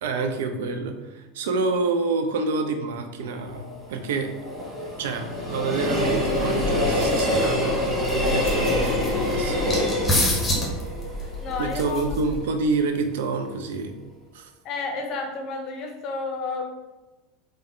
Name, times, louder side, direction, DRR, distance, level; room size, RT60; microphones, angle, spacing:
voice 1, 0.0-4.3 5.0-9.6 11.6-13.9 14.3-14.5, right 3 dB, 65° right, 6 dB, 0.3 m, -27 dB
Train, 3.4-12.4 12.8-12.9, left 1 dB, 20° right, 1.2 m, -26 dB
sound 1, 6.0-12.5, left 1 dB, 15° left, 0.9 m, -29 dB
voice 2, 11.4-12.0 14.6-16.7, left 4 dB, 45° left, 3 dB, 0.6 m, -31 dB
3.4 x 2.1 x 3.0 m, 1.1 s
figure-of-eight pair, 75°, 0 cm